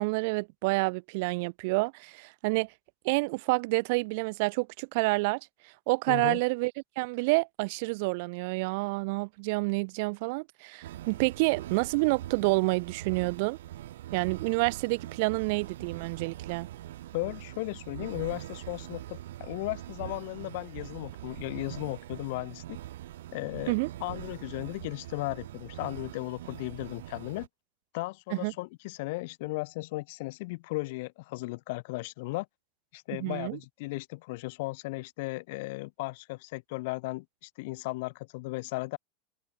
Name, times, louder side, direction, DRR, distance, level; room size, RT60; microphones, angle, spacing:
voice 1, 0.0-2.7 3.0-5.4 5.9-6.7 7.0-13.6 14.1-16.7 23.7-23.9 28.3-28.5 33.1-33.6, right 28 dB, 55° right, 0.9 m, -28 dB
voice 2, 6.1-6.4 17.1-22.8 23.3-27.5 27.9-32.5 32.9-39.0, left 23 dB, 60° left, 1.7 m, -36 dB
sound 1, 10.8-27.5, right 13 dB, 90° right, 5.0 m, -43 dB
open air
supercardioid pair, 160°, 0 cm